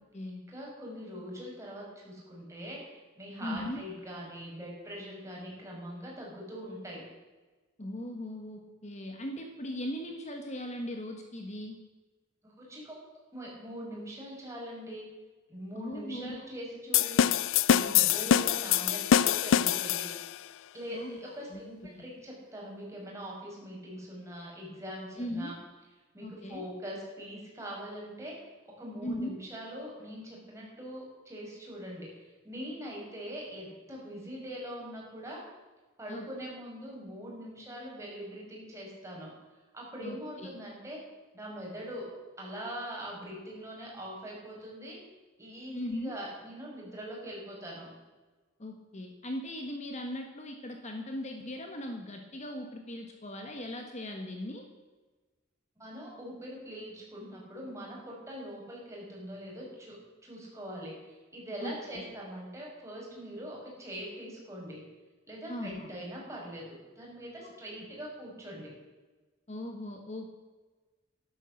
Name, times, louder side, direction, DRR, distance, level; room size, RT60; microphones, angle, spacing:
voice 1, 0.5-7.0 12.4-13.0 13.3-15.0 15.5-17.3 17.7-20.1 20.7-25.6 26.1-28.3 28.6-35.4 36.0-39.3 39.7-41.0 41.3-42.1 42.4-45.0 45.4-47.9 55.8-64.8 65.3-68.7, equal, 15° right, -3 dB, 5.5 m, -42 dB
voice 2, 3.4-3.8 7.8-11.8 15.7-16.5 20.9-22.0 25.2-25.6 26.2-26.6 29.0-29.3 36.1-36.3 40.0-40.5 45.7-46.1 48.6-54.7 61.6-62.1 65.5-65.9 67.4-67.8 69.5-70.3, left 1 dB, 35° left, 4 dB, 1.5 m, -39 dB
sound 1, 16.9-20.4, left 9 dB, 85° left, 0.4 m, -25 dB
12.5 x 11.5 x 7.2 m, 1.3 s
head